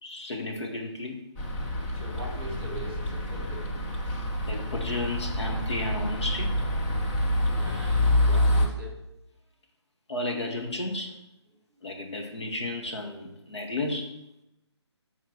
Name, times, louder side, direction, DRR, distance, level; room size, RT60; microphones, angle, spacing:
voice 1, 0.0-1.2 4.5-6.6 10.1-11.2 11.8-14.2, left 2 dB, 70° left, 2 dB, 2.2 m, -33 dB
sound 1, 1.4-8.7, left 1 dB, 20° left, 1.0 m, -27 dB
voice 2, 1.9-3.7 7.5-9.0, right 1 dB, 25° right, -2 dB, 3.3 m, -41 dB
9.7 x 4.3 x 6.4 m, 0.88 s
figure-of-eight pair, 160°, 15 cm